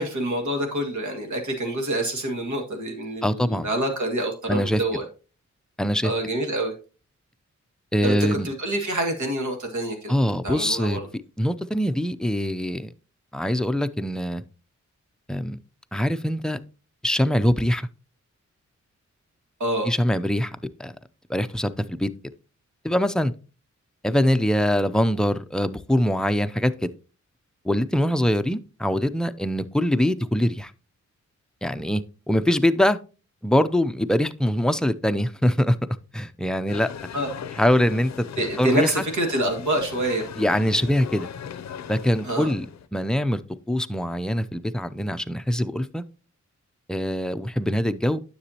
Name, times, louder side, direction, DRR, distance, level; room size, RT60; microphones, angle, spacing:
voice 1, 0.0-5.0 6.0-6.7 8.0-8.1 8.4-10.1 10.4-11.1 19.6-19.9 37.1-37.3 38.4-40.3 42.2-42.5, right 1 dB, 75° right, 3 dB, 2.1 m, -26 dB
voice 2, 3.2-3.7 4.5-4.8 5.8-6.1 7.9-8.5 10.1-11.0 11.4-12.9 13.3-14.4 15.3-15.6 15.9-16.6 17.0-17.9 19.8-20.9 21.3-22.1 22.8-23.3 24.0-26.9 27.6-30.7 31.6-33.0 33.4-35.8 36.1-36.9 37.6-38.3 38.6-39.0 40.4-41.3 41.9-42.7 42.9-43.4 43.7-46.0 46.9-48.2, equal, ahead, 10 dB, 0.5 m, -23 dB
sound 1, 36.7-42.9, left 8 dB, 65° left, 0.5 m, -38 dB
9.8 x 6.9 x 2.8 m, 0.35 s
cardioid pair, 85°, 30 cm